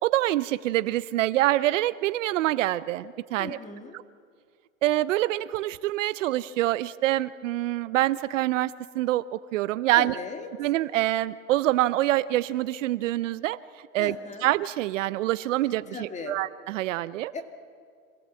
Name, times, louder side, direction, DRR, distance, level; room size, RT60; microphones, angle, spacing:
voice 1, 0.0-3.6 3.9-4.0 4.8-10.2 10.6-13.6 13.9-17.3, right 15 dB, 60° right, 16 dB, 0.7 m, -26 dB
voice 2, 3.4-4.0 9.9-10.5 14.0-14.5 15.9-16.4 17.3-17.4, left 4 dB, 15° left, 6 dB, 2.0 m, -37 dB
27.0 x 17.5 x 7.6 m, 2.1 s
hypercardioid pair, 125°, 42 cm